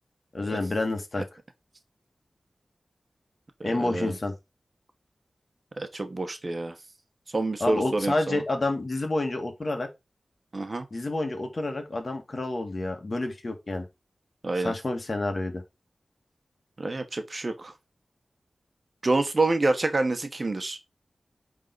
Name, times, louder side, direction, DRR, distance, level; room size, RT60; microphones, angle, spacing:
voice 1, 0.3-1.2 3.6-4.3 7.6-9.9 10.9-13.9 14.6-15.6, left 2 dB, 50° left, 2.1 m, -29 dB
voice 2, 3.6-4.1 5.8-6.7 7.3-8.4 10.5-10.8 14.4-14.7 16.8-17.7 19.0-20.8, right 2 dB, 45° right, 1.1 m, -27 dB
9.0 x 3.8 x 4.0 m
wide cardioid pair, 65°, 0 cm